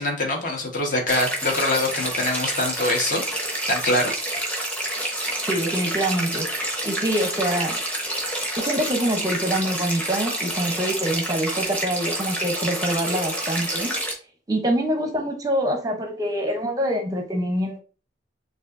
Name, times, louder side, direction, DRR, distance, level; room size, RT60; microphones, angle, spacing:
voice 1, 0.0-4.1, left 2 dB, 45° left, 2 dB, 1.1 m, -24 dB
sound 1, 1.1-14.1, right 1 dB, 10° left, 1.0 m, -28 dB
voice 2, 5.4-6.5 6.8-7.8 8.6-13.9 14.5-17.8, right 1 dB, 20° right, 3 dB, 0.7 m, -25 dB
7.1 x 2.5 x 2.5 m, 0.37 s
head